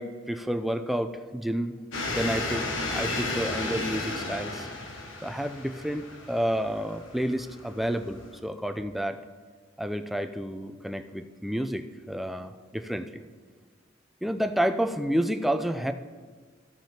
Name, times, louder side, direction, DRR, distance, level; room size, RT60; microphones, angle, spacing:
voice 1, 0.0-1.7 2.1-4.7 5.2-9.2 9.8-13.2 14.2-15.9, equal, ahead, 8 dB, 0.3 m, -30 dB
sound 1, 1.9-8.4, left 2 dB, 90° left, 1.2 m, -33 dB
15.0 x 6.1 x 2.9 m, 1.5 s
head